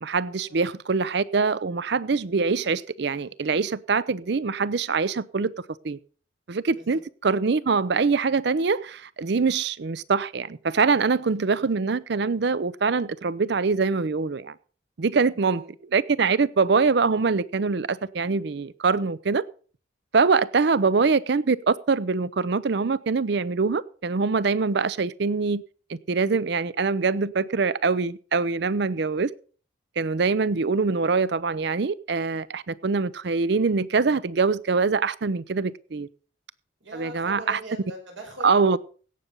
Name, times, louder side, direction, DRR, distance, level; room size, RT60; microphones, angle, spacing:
voice 1, 0.0-5.5 5.8-6.0 6.5-14.5 15.0-15.6 15.9-19.4 20.1-25.6 25.9-29.3 30.0-36.1 36.9-37.6 38.4-38.8, right 4 dB, 55° right, 0.5 m, -24 dB
voice 2, 15.3-15.7 20.7-21.1 36.8-38.8, right 1 dB, 75° right, 5.1 m, -42 dB
16.5 x 6.8 x 5.3 m
head